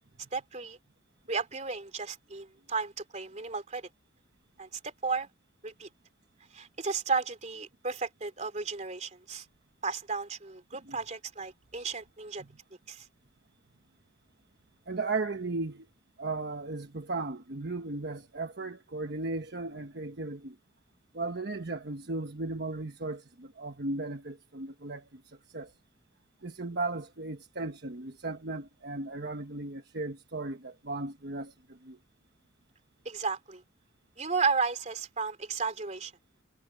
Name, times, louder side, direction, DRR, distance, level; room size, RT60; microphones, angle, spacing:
voice 1, 0.3-0.8 1.3-3.9 4.6-5.3 5.6-5.9 6.5-9.4 9.8-12.4 12.9-13.1 33.0-33.6 34.2-36.1, right 4 dB, 35° right, 3.2 m, -33 dB
voice 2, 14.9-15.9 16.2-20.6 21.1-25.7 26.4-32.0, right 3 dB, 55° right, 1.2 m, -36 dB
head